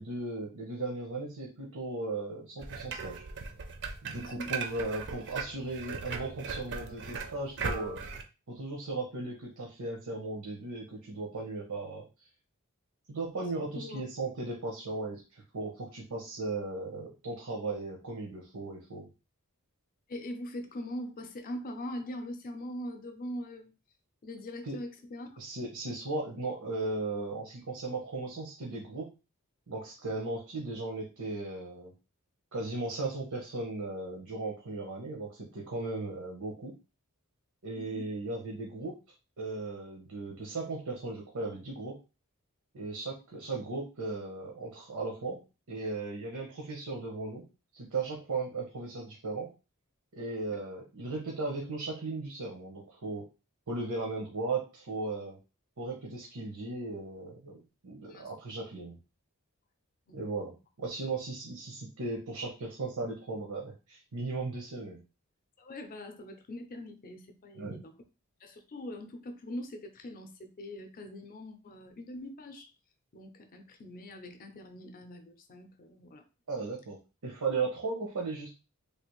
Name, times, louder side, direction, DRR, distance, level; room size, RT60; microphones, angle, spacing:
voice 1, 0.0-3.2 4.0-8.0 8.5-12.1 13.1-19.1 24.6-24.8 25.4-29.1 29.7-31.9 32.5-36.7 37.6-39.0 39.4-42.0 42.7-45.4 45.7-47.4 47.7-49.5 50.1-53.2 53.7-55.4 55.8-59.0 60.1-60.5 60.8-65.0 67.6-67.8 76.5-77.0 77.2-78.5, right 3 dB, 90° right, -1 dB, 0.9 m, -36 dB
sound 1, 2.6-8.2, right 5 dB, 50° right, 0.5 m, -38 dB
voice 2, 13.2-14.0 20.1-23.7 24.2-25.3 37.8-38.1 58.1-58.3 60.1-60.2 65.6-67.9 68.4-72.7 73.1-76.2, left 1 dB, 40° left, 7 dB, 0.5 m, -42 dB
3.3 x 2.5 x 3.0 m, 0.31 s
head